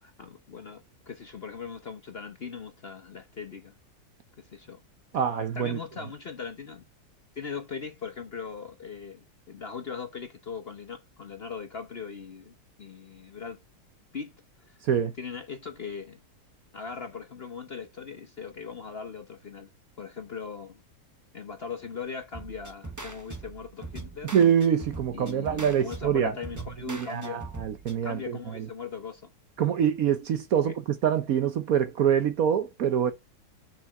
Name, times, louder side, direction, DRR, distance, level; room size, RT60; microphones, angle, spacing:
voice 1, 0.0-3.7 4.4-4.8 5.5-6.8 7.4-13.6 14.1-14.3 14.6-14.7 15.2-16.2 16.7-19.7 20.0-20.8 21.3-24.3 25.1-27.5 28.0-29.3 30.6-30.7, left 6 dB, 45° left, 0.9 m, -39 dB
voice 2, 5.1-5.8 14.8-15.1 24.3-26.3 26.9-28.7 29.6-33.1, right 8 dB, 60° right, 1.0 m, -25 dB
sound 1, 22.3-28.0, right 3 dB, 15° right, 0.6 m, -41 dB
6.8 x 5.8 x 5.3 m
omnidirectional pair, 2.0 m